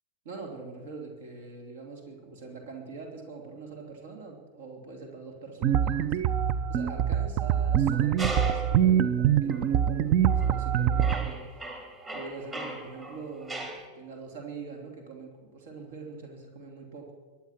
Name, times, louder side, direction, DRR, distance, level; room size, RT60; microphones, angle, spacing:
voice 1, 0.2-6.2 6.7-11.7 12.1-17.1, right 4 dB, 60° right, 2 dB, 3.2 m, -43 dB
sound 1, 5.6-11.3, right 9 dB, 40° right, 0.8 m, -24 dB
sound 2, 8.2-8.8 9.5-9.7 10.3-10.7 11.0-13.9, right 1 dB, 20° right, 2.8 m, -38 dB
23.0 x 10.5 x 5.9 m, 1.5 s
figure-of-eight pair, 90°, 0 cm